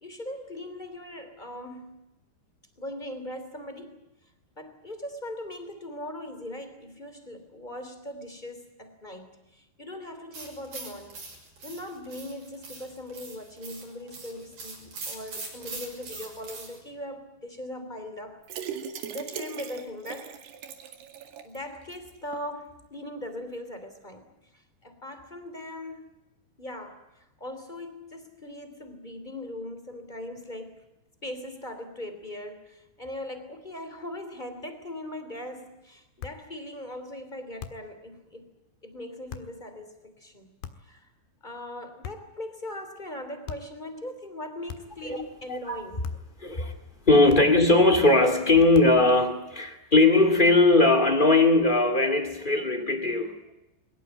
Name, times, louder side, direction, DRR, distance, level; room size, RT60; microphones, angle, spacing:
voice 1, 0.0-2.0 2.8-4.0 4.6-11.2 11.6-18.4 19.1-20.4 21.4-24.2 24.5-26.1 26.6-30.8 31.2-38.5 38.8-40.5 40.8-41.1 41.4-46.1 46.5-46.6, left 1 dB, 10° left, 8 dB, 2.5 m, -39 dB
sound 1, 10.3-16.8, right 3 dB, 50° right, 7.9 m, -41 dB
sound 2, 18.4-21.6 21.9-22.0 22.3-22.4, right 7 dB, 70° right, 4.0 m, -38 dB
sound 3, 36.2-36.5 37.6-38.0 39.3-39.6 40.6-41.0 42.0-42.4 43.5-43.8 44.7-45.1 46.0-46.4 47.3-47.7 48.7-49.1, left 8 dB, 80° left, 3.9 m, -41 dB
voice 2, 45.5-45.8 46.4-46.7 47.0-53.4, left 2 dB, 35° left, 5 dB, 0.7 m, -20 dB
22.5 x 21.0 x 9.0 m, 0.93 s
omnidirectional pair, 5.1 m